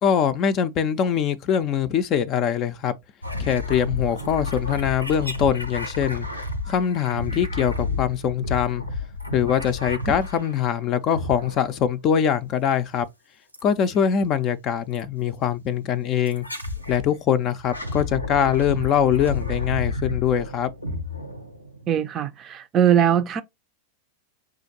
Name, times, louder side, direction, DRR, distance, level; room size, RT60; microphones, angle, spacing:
voice 1, 0.0-2.9 3.4-6.3 6.7-8.8 9.3-13.1 13.6-16.4 16.9-20.7, left 8 dB, 35° left, 0.5 m, -23 dB
sound 1, 3.2-10.7 11.1-11.8 13.5-14.0 15.0-15.1 16.3-17.1 17.5-21.9, left 3 dB, 85° left, 0.7 m, -31 dB
voice 2, 21.9-23.4, right 9 dB, 30° right, 0.5 m, -20 dB
6.2 x 2.5 x 2.7 m
figure-of-eight pair, 90°, 0 cm